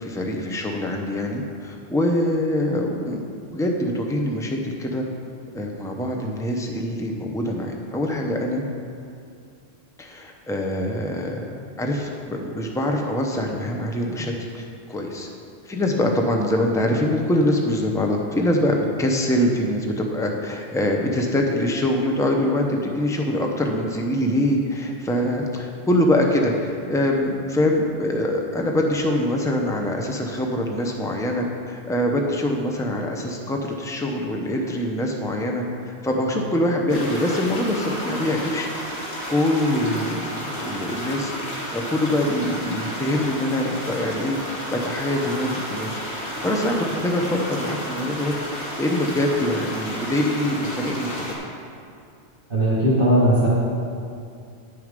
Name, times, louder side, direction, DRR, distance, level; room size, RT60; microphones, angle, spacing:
voice 1, 0.0-5.1 5.5-8.7 10.0-15.3 15.7-38.7 38.9-48.3 48.6-51.4, left 1 dB, 5° left, 1 dB, 0.7 m, -24 dB
sound 1, 36.9-51.3, equal, 55° left, 1.9 m, -32 dB
voice 2, 52.5-53.5, right 1 dB, 50° right, -8 dB, 2.0 m, -18 dB
10.0 x 6.5 x 5.2 m, 2.4 s
omnidirectional pair, 1.2 m